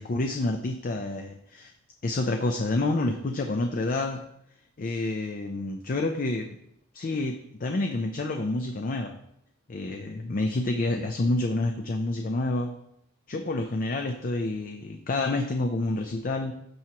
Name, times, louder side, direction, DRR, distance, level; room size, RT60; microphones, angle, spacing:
voice 1, 0.0-1.7 2.0-4.2 4.8-6.5 6.9-9.2 9.7-12.7 13.3-16.5, left 2 dB, 40° left, 4 dB, 0.5 m, -28 dB
13.0 x 4.6 x 2.9 m, 0.77 s
head